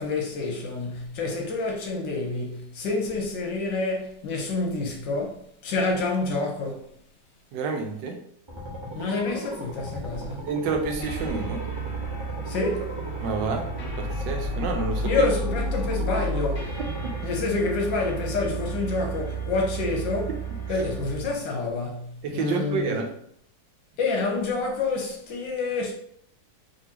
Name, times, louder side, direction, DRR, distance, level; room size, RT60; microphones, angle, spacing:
voice 1, 0.0-6.9 8.9-10.5 12.5-13.0 15.0-16.7 17.2-20.4 20.7-23.0 24.0-25.9, left 3 dB, 80° left, 1.6 m, -28 dB
voice 2, 7.5-8.2 10.1-11.6 13.2-13.6 14.0-15.1 17.0-17.1 22.2-23.1, right 4 dB, 80° right, 1.3 m, -29 dB
sound 1, 8.5-17.2, equal, 35° right, 0.4 m, -37 dB
sound 2, 11.0-21.3, right 2 dB, 50° left, 1.0 m, -32 dB
3.9 x 3.3 x 2.8 m
omnidirectional pair, 2.0 m